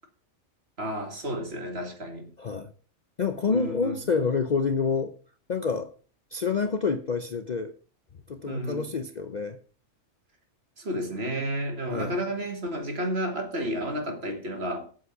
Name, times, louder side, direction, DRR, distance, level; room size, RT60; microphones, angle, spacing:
voice 1, 0.8-2.3 3.5-4.0 8.5-8.9 10.8-14.9, equal, 50° right, 2.2 m, -31 dB
voice 2, 2.4-2.7 3.2-5.1 5.5-5.9 6.3-7.7 8.3-9.6 11.9-12.1, left 5 dB, 45° left, 0.6 m, -27 dB
8.2 x 7.8 x 5.8 m
omnidirectional pair, 1.4 m